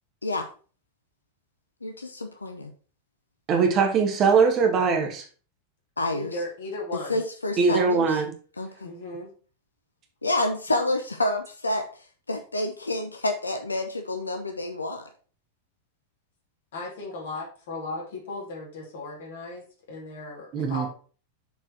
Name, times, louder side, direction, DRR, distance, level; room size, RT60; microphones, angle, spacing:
voice 1, 1.8-2.7 6.0-6.4 7.1-8.2 8.6-8.9 10.2-15.1, left 2 dB, 80° left, 0.7 m, -29 dB
voice 2, 3.5-5.2 7.6-8.3 20.5-20.9, right 5 dB, 35° right, 1.6 m, -21 dB
voice 3, 6.1-7.2 8.8-9.3 16.7-20.9, left 2 dB, 60° left, 2.6 m, -36 dB
7.0 x 4.5 x 4.4 m
figure-of-eight pair, 90°, 0 cm